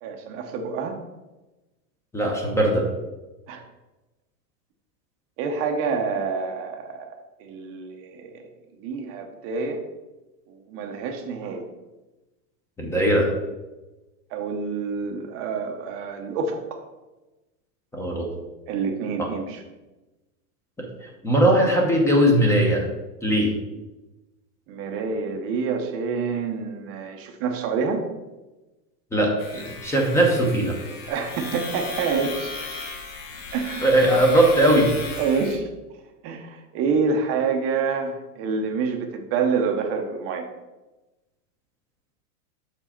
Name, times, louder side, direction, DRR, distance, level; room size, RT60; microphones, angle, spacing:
voice 1, 0.0-1.0 3.5-3.6 5.4-8.5 8.8-9.8 10.5-11.7 14.3-16.9 18.7-19.6 24.7-28.0 31.1-32.5 33.5-33.9 35.2-35.7 36.2-40.5, right 5 dB, 30° right, 5 dB, 0.7 m, -27 dB
voice 2, 2.1-2.9 12.8-13.3 17.9-18.3 19.2-19.3 21.2-22.8 23.2-23.5 29.1-30.7 33.8-34.9, right 1 dB, 5° left, 0 dB, 0.9 m, -19 dB
sound 1, 29.4-35.6, left 3 dB, 70° left, 1.8 m, -36 dB
6.9 x 4.7 x 4.3 m, 1.1 s
supercardioid pair, 150°, 45 cm